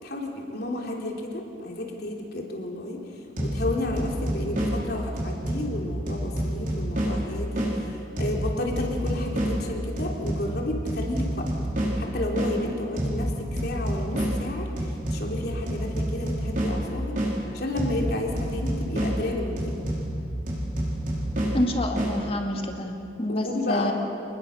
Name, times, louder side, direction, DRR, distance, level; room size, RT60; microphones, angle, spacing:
voice 1, 0.0-3.0 3.4-7.7 8.2-11.5 12.0-13.3 13.6-17.2 17.5-19.8 23.3-23.9, left 1 dB, 55° left, 0 dB, 3.5 m, -32 dB
sound 1, 3.4-7.7 8.2-12.5 13.0-17.3 17.8-22.1, equal, 45° right, 5.2 m, -29 dB
voice 2, 21.5-23.9, left 1 dB, 30° left, 3 dB, 2.3 m, -28 dB
28.0 x 20.5 x 6.6 m, 2.6 s
head